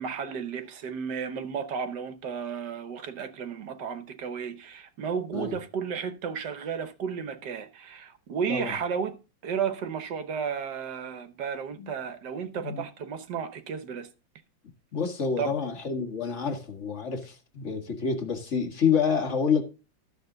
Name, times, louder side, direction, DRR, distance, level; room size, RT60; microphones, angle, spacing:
voice 1, 0.0-14.1 15.4-15.5, right 6 dB, 60° right, 1.5 m, -33 dB
voice 2, 14.9-19.6, left 6 dB, 40° left, 1.8 m, -28 dB
13.0 x 7.5 x 3.8 m
omnidirectional pair, 2.2 m